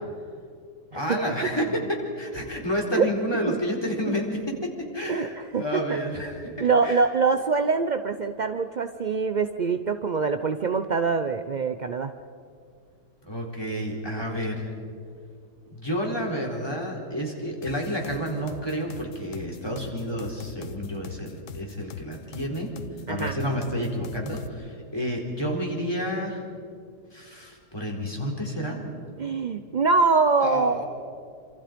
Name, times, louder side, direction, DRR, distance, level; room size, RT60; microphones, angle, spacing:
voice 1, 0.9-7.0 13.3-14.7 15.7-22.7 23.1-26.4 27.1-28.8 30.4-30.9, equal, 15° left, 0 dB, 4.1 m, -30 dB
voice 2, 5.1-6.0 6.6-12.1 23.1-23.3 29.2-30.8, right 4 dB, 65° right, 8 dB, 0.4 m, -24 dB
sound 1, 17.6-24.5, left 7 dB, 55° left, 1.2 m, -42 dB
27.5 x 26.5 x 5.2 m, 2.3 s
omnidirectional pair, 1.8 m